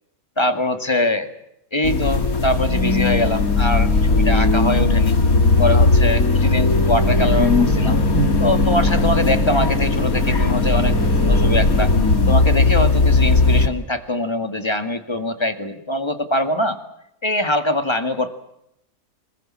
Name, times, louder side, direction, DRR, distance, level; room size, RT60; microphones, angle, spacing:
voice 1, 0.4-1.3 1.7-5.1 5.6-8.1 8.4-12.0 12.3-16.8 17.2-18.3, left 1 dB, 20° left, 7 dB, 2.0 m, -23 dB
sound 1, 1.8-13.7, left 3 dB, 75° left, 2.9 m, -17 dB
26.5 x 20.5 x 7.5 m, 0.81 s
omnidirectional pair, 1.5 m